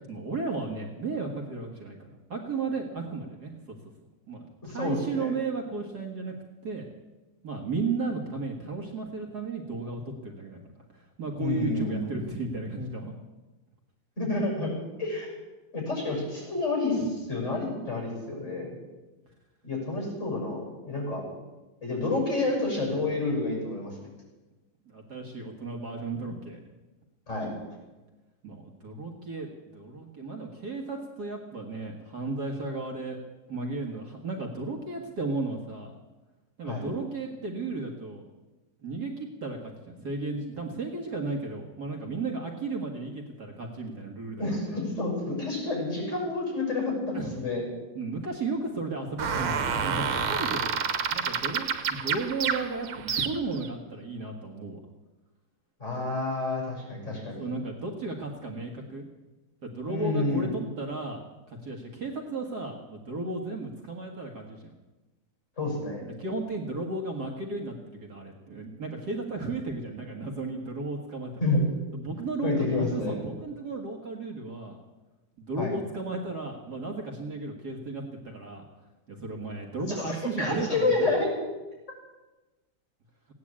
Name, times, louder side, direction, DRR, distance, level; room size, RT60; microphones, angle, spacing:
voice 1, 0.1-3.8 4.3-6.3 6.6-6.8 7.4-13.1 24.9-26.6 28.4-33.2 33.5-35.9 36.6-38.2 38.8-44.8 47.1-47.3 48.0-54.8 57.4-59.0 59.6-61.2 61.5-64.7 65.8-71.3 71.9-74.8 75.4-78.6 79.1-81.2, right 3 dB, 50° right, 2 dB, 2.1 m, -34 dB
voice 2, 4.6-5.3 11.4-12.1 14.2-14.7 15.0-15.3 15.7-18.8 19.6-21.2 21.8-24.0 27.3-27.5 36.6-36.8 44.4-47.6 55.8-57.5 59.9-60.5 65.6-66.0 71.4-71.6 72.4-73.2 75.6-75.8 79.9-81.3, left 3 dB, 35° left, -1 dB, 6.9 m, -29 dB
sound 1, 49.2-53.7, right 6 dB, 80° right, 2.0 m, -29 dB
17.0 x 9.6 x 8.6 m, 1.1 s
omnidirectional pair, 2.3 m